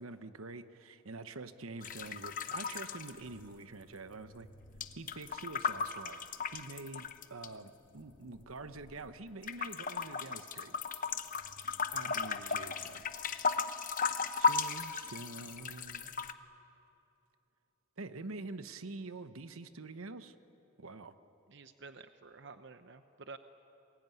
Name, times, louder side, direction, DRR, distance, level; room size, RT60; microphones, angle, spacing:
voice 1, 0.0-4.5 5.0-10.7 11.9-13.0 14.4-16.3 18.0-20.4 20.8-21.1, right 3 dB, 80° right, 11 dB, 1.0 m, -46 dB
sound 1, 1.8-3.9 4.1-7.5 8.1-9.1 9.4-16.3, left 5 dB, 40° left, 0.9 m, -36 dB
voice 2, 21.5-23.4, right 4 dB, 55° right, 9 dB, 0.8 m, -51 dB
28.0 x 21.0 x 9.3 m, 3.0 s
head